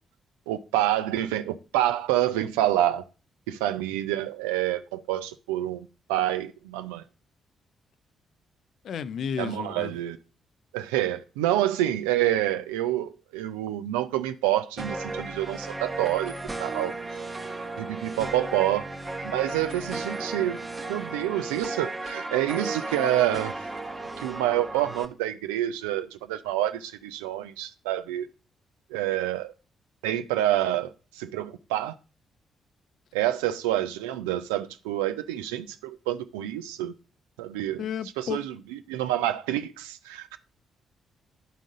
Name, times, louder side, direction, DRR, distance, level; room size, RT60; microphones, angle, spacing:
voice 1, 0.5-3.0 3.5-7.0 9.4-10.2 10.7-16.3 16.6-16.9 17.8-18.9 19.2-20.6 20.9-23.5 24.2-28.3 28.9-29.5 30.0-32.0 33.1-36.9 37.4-37.8 38.2-38.5 38.9-40.4, right 13 dB, 80° right, 0.4 m, -27 dB
voice 2, 8.8-10.0 37.8-38.4, left 8 dB, 60° left, 0.5 m, -32 dB
sound 1, 14.8-25.1, right 2 dB, 25° right, 1.0 m, -35 dB
11.0 x 3.8 x 3.6 m
hypercardioid pair, 40°, 0 cm